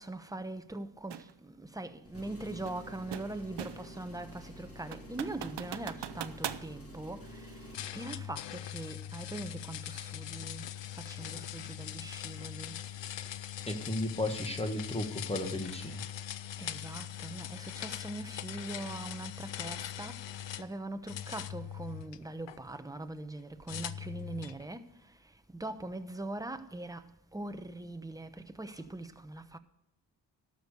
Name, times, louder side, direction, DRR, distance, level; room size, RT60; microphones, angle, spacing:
voice 1, 0.0-7.6 7.9-10.7 11.0-12.8 16.6-20.3 20.6-24.9 25.5-27.0 27.3-29.6, right 2 dB, 10° right, 0.8 m, -42 dB
sound 1, 1.1-1.3 2.7-4.0 4.4-4.5 4.9-6.7, right 10 dB, 70° right, 0.7 m, -40 dB
Engine, 2.0-7.9, left 1 dB, 30° left, 2.7 m, -49 dB
sound 2, 7.7-20.7 21.1-22.6 23.7-24.6, left 11 dB, 80° left, 0.6 m, -41 dB
voice 2, 13.7-16.0, left 1 dB, 15° left, 1.6 m, -34 dB
12.5 x 6.6 x 6.7 m
cardioid pair, 80°, 43 cm